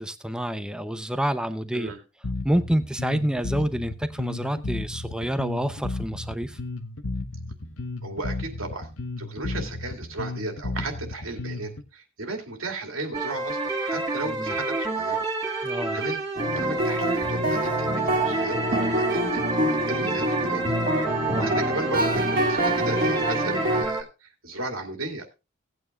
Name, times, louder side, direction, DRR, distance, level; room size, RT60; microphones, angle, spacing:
voice 1, 0.0-1.9 2.4-6.6 9.5-9.7 14.2-14.5 15.6-16.0 21.3-21.6, right 1 dB, 5° right, 0.7 m, -28 dB
Bass guitar, 2.2-11.8, left 2 dB, 75° left, 1.1 m, -33 dB
voice 2, 8.0-8.9 9.2-16.2 16.5-20.6 21.0-25.3, right 2 dB, 80° right, 2.5 m, -35 dB
sound 1, 13.1-24.0, right 3 dB, 20° right, 2.3 m, -28 dB
sound 2, 16.4-23.9, equal, 45° right, 1.6 m, -26 dB
18.0 x 9.0 x 2.4 m
head